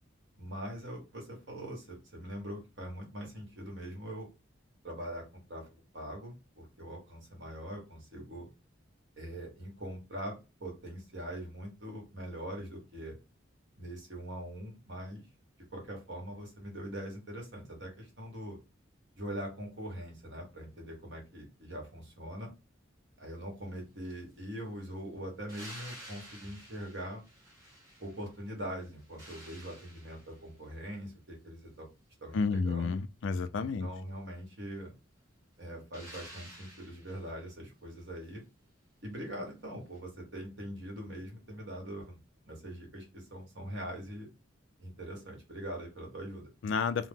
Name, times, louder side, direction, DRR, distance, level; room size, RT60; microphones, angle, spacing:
voice 1, 0.4-4.3 4.8-8.5 9.2-13.2 13.8-15.2 15.7-18.6 19.2-22.5 23.2-27.2 28.0-31.9 32.2-32.9 33.6-34.9 35.6-38.4 39.0-42.2 42.4-44.3 44.8-46.5, equal, 60° right, 1.3 m, -42 dB
sound 1, 25.5-28.4 28.8-30.6 35.9-37.4 39.9-40.0, right 1 dB, 15° right, 1.1 m, -51 dB
voice 2, 32.3-33.9 46.6-47.1, left 4 dB, 65° left, 0.3 m, -31 dB
2.8 x 2.0 x 3.4 m
head